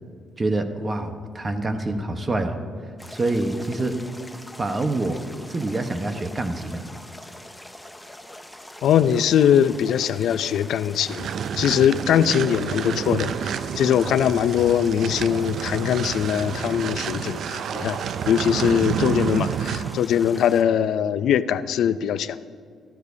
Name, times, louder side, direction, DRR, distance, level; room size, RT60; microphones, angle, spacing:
voice 1, 0.4-2.6 3.1-4.0 4.6-5.2 5.5-6.9, right 2 dB, 30° right, 7 dB, 1.1 m, -26 dB
sound 1, 3.0-20.6, left 1 dB, 5° left, 0.7 m, -43 dB
voice 2, 8.8-11.3 11.6-18.0 18.3-22.4, left 9 dB, 75° left, 14 dB, 0.4 m, -21 dB
sound 2, 11.0-20.0, right 8 dB, 70° right, 0.4 m, -29 dB
14.0 x 13.0 x 2.8 m, 2.1 s
cardioid pair, 90°, 0 cm